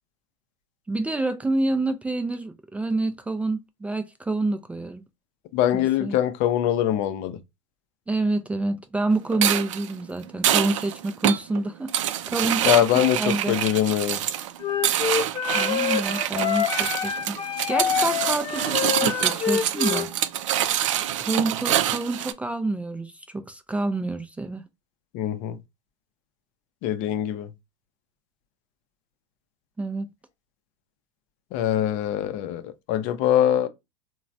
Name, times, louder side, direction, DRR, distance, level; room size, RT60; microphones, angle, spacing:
voice 1, 0.9-5.0 5.7-6.2 8.1-11.9 12.3-12.9 13.2-13.5 15.5-20.1 21.2-24.6 29.8-30.1, right 2 dB, 10° right, 0.3 m, -28 dB
voice 2, 5.5-7.4 12.6-14.2 25.1-25.6 26.8-27.5 31.5-33.7, left 11 dB, 50° left, 0.5 m, -23 dB
sound 1, 9.3-22.3, right 11 dB, 75° right, 0.4 m, -26 dB
Wind instrument woodwind instrument, 14.6-20.1, left 9 dB, 35° left, 0.9 m, -26 dB
3.0 x 2.2 x 2.5 m
hypercardioid pair, 100°, 16 cm